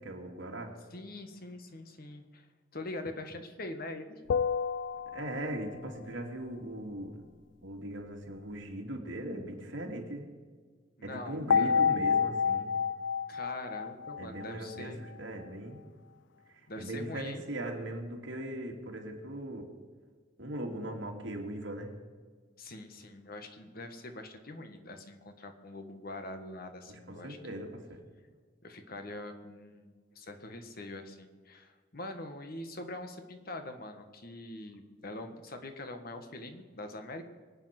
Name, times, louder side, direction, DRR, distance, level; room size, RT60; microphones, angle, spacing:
voice 1, 0.0-0.7 5.1-7.2 7.6-10.3 11.0-12.8 14.2-15.8 16.5-19.7 20.4-22.0 26.9-28.1, right 1 dB, 80° right, 2 dB, 2.5 m, -39 dB
voice 2, 0.9-4.2 11.0-11.9 13.3-15.1 16.7-17.4 22.6-27.6 28.6-37.2, left 2 dB, 50° left, 7 dB, 1.6 m, -43 dB
sound 1, 4.3-5.8 11.5-14.8, left 6 dB, 65° left, 0.3 m, -29 dB
24.0 x 8.8 x 6.0 m, 1.5 s
head